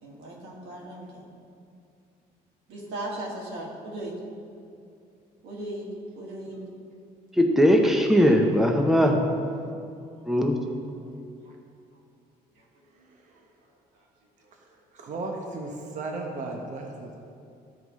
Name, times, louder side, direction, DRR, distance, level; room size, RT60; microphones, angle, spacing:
voice 1, 0.0-1.3 2.7-4.1 5.4-5.9 6.2-6.6 10.2-10.3 12.6-12.7 13.0-13.1 13.3-13.4 13.9-14.1 14.4-14.5, right 1 dB, 85° right, -2 dB, 1.9 m, -38 dB
voice 2, 7.4-9.1 10.3-10.6, equal, ahead, 2 dB, 0.7 m, -19 dB
voice 3, 13.0-13.3 14.5-14.6 14.9-17.2, right 2 dB, 45° right, 1 dB, 1.0 m, -36 dB
14.0 x 4.9 x 3.1 m, 2.5 s
cardioid pair, 110°, 17 cm